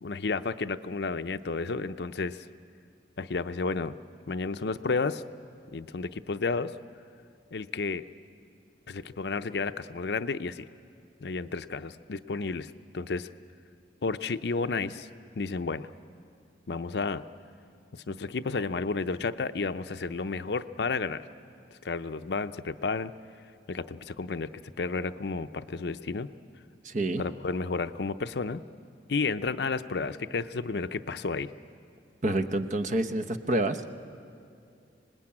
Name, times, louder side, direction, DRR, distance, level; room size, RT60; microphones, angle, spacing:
voice 1, 0.0-2.4 3.2-3.9 4.3-5.2 5.7-6.7 7.5-8.0 8.9-10.7 11.2-13.3 14.0-15.1 15.4-15.9 16.7-17.2 17.9-21.3 21.8-23.1 23.7-24.5 24.8-26.3 27.2-28.6 29.1-31.5, left 4 dB, 65° left, 11 dB, 0.6 m, -31 dB
voice 2, 26.8-27.2 32.2-33.8, right 1 dB, 45° right, 10 dB, 0.9 m, -28 dB
25.5 x 20.0 x 8.7 m, 2.4 s
head